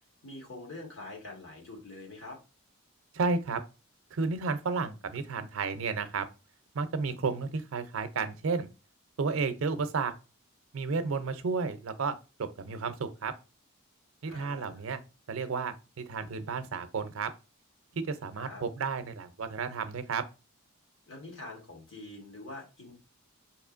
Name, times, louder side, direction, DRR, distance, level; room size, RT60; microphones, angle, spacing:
voice 1, 0.2-2.4 14.2-14.8 18.4-18.6 21.1-22.9, left 2 dB, 60° left, 1.3 m, -45 dB
voice 2, 3.1-3.6 4.1-6.3 6.7-8.7 9.2-10.1 10.7-13.3 14.2-15.0 15.3-17.3 17.9-20.2, right 4 dB, 65° right, 0.5 m, -32 dB
4.2 x 2.9 x 2.4 m
head